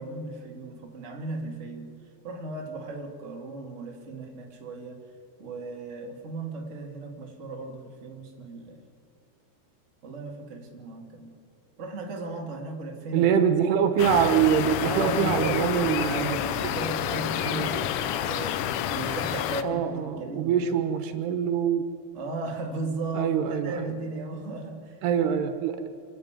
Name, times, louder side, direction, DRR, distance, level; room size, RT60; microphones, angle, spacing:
voice 1, 0.0-1.9 2.2-5.0 5.4-8.8 10.0-11.3 11.8-13.6 14.9-18.6 18.9-20.7 22.1-25.0, right 2 dB, 25° right, 0 dB, 2.1 m, -36 dB
voice 2, 13.1-16.4 17.5-17.8 19.6-21.8 23.2-23.9 25.0-25.9, right 8 dB, 85° right, 7 dB, 3.3 m, -24 dB
sound 1, 14.0-19.6, left 11 dB, 80° left, 1.9 m, -29 dB
28.5 x 11.0 x 9.2 m, 2.4 s
omnidirectional pair, 4.7 m